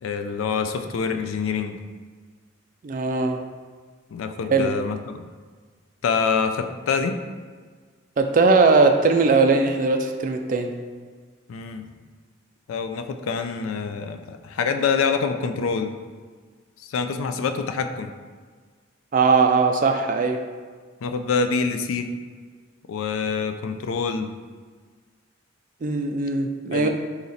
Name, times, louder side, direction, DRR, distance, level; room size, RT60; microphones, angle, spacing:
voice 1, 0.0-1.8 4.1-5.3 6.0-7.2 11.5-11.9 12.7-15.9 16.8-18.1 21.0-22.1 22.9-24.3 26.7-26.9, left 5 dB, 80° left, 7 dB, 0.3 m, -26 dB
voice 2, 2.8-3.4 4.5-4.7 8.2-10.8 19.1-20.4 25.8-26.9, right 4 dB, 40° right, 5 dB, 0.3 m, -19 dB
4.1 x 3.0 x 3.8 m, 1.5 s
head